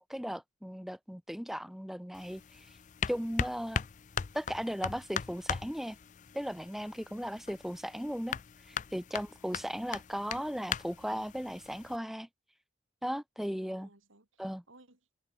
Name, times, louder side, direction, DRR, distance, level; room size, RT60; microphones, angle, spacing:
voice 1, 0.0-2.7 3.1-3.8 4.3-6.0 6.3-8.4 8.7-12.3 13.0-13.9 14.4-14.6, equal, ahead, 0.7 m, -37 dB
sound 1, 2.1-12.0, left 7 dB, 35° left, 0.4 m, -40 dB
voice 2, 13.5-15.1, right 2 dB, 75° right, 4.0 m, -61 dB
head